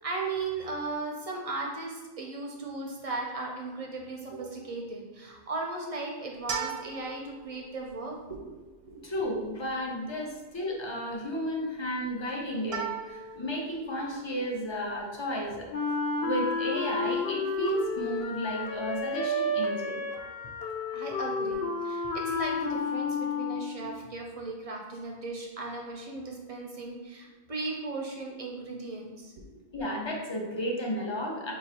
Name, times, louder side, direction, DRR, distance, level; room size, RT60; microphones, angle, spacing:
voice 1, 0.0-8.6 8.9-9.1 20.9-29.6, right 3 dB, 50° right, -1 dB, 0.5 m, -37 dB
sound 1, 6.3-19.2, right 6 dB, 85° right, 0.9 m, -43 dB
voice 2, 9.0-15.7 16.2-20.1 29.7-31.5, equal, 35° left, -1 dB, 0.4 m, -33 dB
Wind instrument woodwind instrument, 15.7-23.9, left 3 dB, 75° left, 0.8 m, -31 dB
4.7 x 2.4 x 2.8 m, 1.2 s
omnidirectional pair, 1.1 m